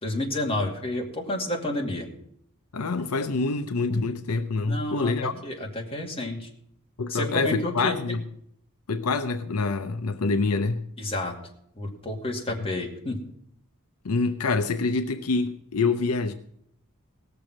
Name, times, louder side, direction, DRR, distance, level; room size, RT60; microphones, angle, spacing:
voice 1, 0.0-2.1 4.7-6.5 7.1-7.9 11.0-11.3 11.8-13.2, left 1 dB, 25° left, 2.3 m, -30 dB
voice 2, 2.7-5.4 7.0-8.2 8.9-10.8 14.0-16.3, left 3 dB, 75° left, 0.6 m, -26 dB
18.0 x 6.9 x 6.1 m
head